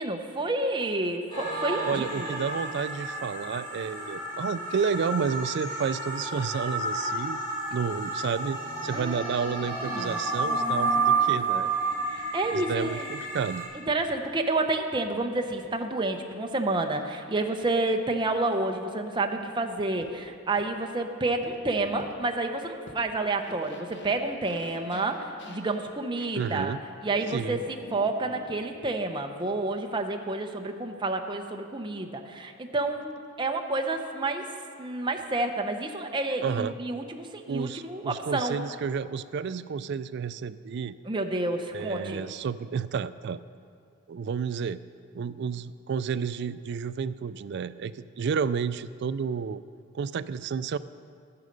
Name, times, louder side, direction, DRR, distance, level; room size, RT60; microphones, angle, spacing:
voice 1, 0.0-2.4 8.9-9.3 9.8-10.2 12.1-13.1 13.9-26.7 27.0-34.5 34.8-38.6 41.1-42.2, right 2 dB, 20° right, 4 dB, 0.6 m, -29 dB
sound 1, 1.3-13.6, right 3 dB, 25° left, 3.6 m, -30 dB
voice 2, 1.8-7.4 7.7-11.7 12.5-13.6 26.4-26.8 27.3-27.6 36.4-36.7 37.5-41.0 41.7-43.4 44.1-44.8 45.1-49.6 49.9-50.8, right 6 dB, 55° right, 15 dB, 0.3 m, -31 dB
sound 2, 10.4-14.7 15.6-15.7 16.9-17.0 17.7-17.8 18.5-18.6 20.0-20.1 20.6-20.7 21.4-21.6 22.0-22.1 22.9-23.0 23.3-26.3 27.0-29.1, left 1 dB, 55° left, 1.1 m, -48 dB
12.0 x 9.7 x 5.2 m, 2.3 s
head